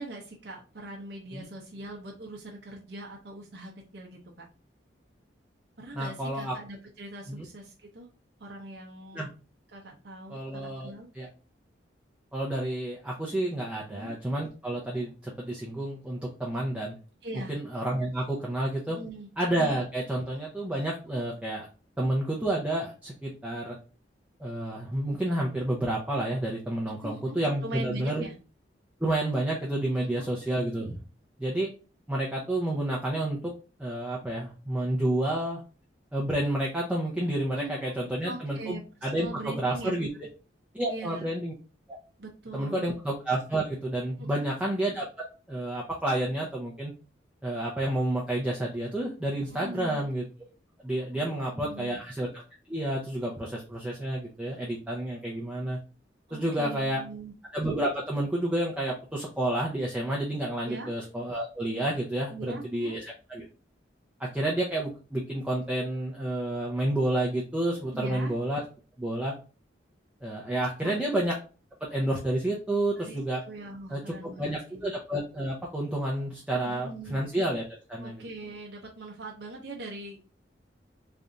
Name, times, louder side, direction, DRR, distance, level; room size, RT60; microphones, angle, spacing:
voice 1, 0.0-4.5 5.8-8.1 8.4-9.3 9.7-11.1 13.9-14.1 17.2-17.5 18.9-19.3 27.0-28.3 30.0-30.3 37.5-37.8 38.3-39.9 40.9-41.3 42.2-42.9 44.2-44.5 49.5-50.0 51.2-52.0 56.3-57.3 60.6-60.9 62.3-63.0 67.9-68.3 70.8-71.0 72.9-73.2 73.4-74.9 76.5-77.2 78.0-80.2, right 2 dB, 65° right, -1 dB, 0.7 m, -42 dB
voice 2, 5.9-6.6 7.3-7.4 9.1-9.3 10.3-11.3 12.3-16.9 17.3-19.0 19.4-21.7 22.0-23.8 24.4-28.2 29.0-31.0 31.4-31.7 32.1-33.5 33.8-35.6 36.1-40.1 40.7-41.5 41.9-42.0 42.5-45.1 45.5-46.9 47.4-50.2 50.8-52.4 52.7-55.8 56.3-57.0 57.5-63.0 63.3-63.5 64.3-68.6 69.0-69.3 70.2-71.3 71.9-73.4 73.9-77.6 77.9-78.2, right 1 dB, 5° right, -4 dB, 0.6 m, -30 dB
3.3 x 2.5 x 3.9 m, 0.35 s
head